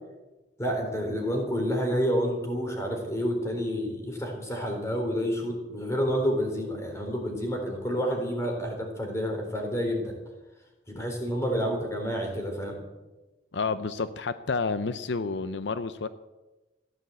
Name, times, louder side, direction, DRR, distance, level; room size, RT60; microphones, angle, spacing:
voice 1, 0.6-10.1 10.9-12.8, equal, 15° left, 2 dB, 3.9 m, -29 dB
voice 2, 13.5-16.1, left 4 dB, 75° left, 13 dB, 0.6 m, -30 dB
15.5 x 11.0 x 8.0 m, 1.1 s
head